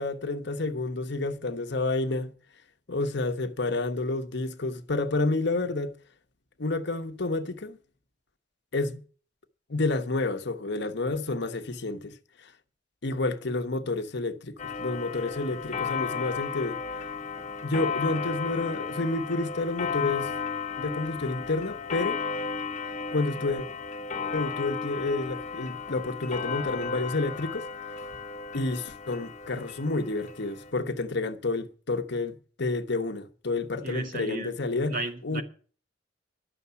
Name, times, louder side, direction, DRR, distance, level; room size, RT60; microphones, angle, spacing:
voice 1, 0.0-2.3 2.9-5.9 6.6-7.8 8.7-9.0 9.7-12.5 13.0-16.8 17.6-20.3 20.8-22.2 23.1-23.7 24.3-27.7 28.5-35.0 35.2-35.4, left 2 dB, 60° left, 1.1 m, -29 dB
Clock, 14.6-30.7, left 6 dB, 40° left, 1.1 m, -34 dB
voice 2, 33.8-34.5 34.9-35.4, right 2 dB, 45° right, 1.9 m, -34 dB
11.5 x 7.0 x 9.5 m
head